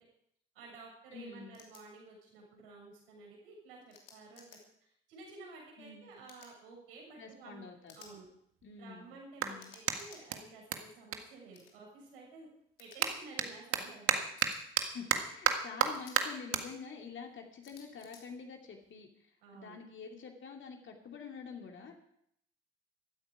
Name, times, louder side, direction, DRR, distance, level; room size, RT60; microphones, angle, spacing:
voice 1, 0.6-4.6 5.1-7.7 8.0-8.3 8.8-12.5 12.8-14.2 19.4-19.8, right 3 dB, 70° right, -1 dB, 6.8 m, -52 dB
voice 2, 1.1-1.6 5.8-6.1 7.2-7.9 8.6-9.1 9.4-9.7 14.9-22.0, left 5 dB, 40° left, 2 dB, 2.6 m, -47 dB
sound 1, 1.5-1.8 3.9-4.6 6.3-6.5 7.9-8.1 9.6-10.2 11.5-11.7 12.8-13.0 14.4-14.6 15.9-16.2 17.6-18.2, left 6 dB, 75° left, 2.8 m, -56 dB
Clapping, 7.3-7.4 8.0-12.1 12.4-19.0, right 8 dB, 45° right, 1.8 m, -36 dB
16.5 x 13.5 x 4.9 m, 0.71 s
figure-of-eight pair, 50°, 29 cm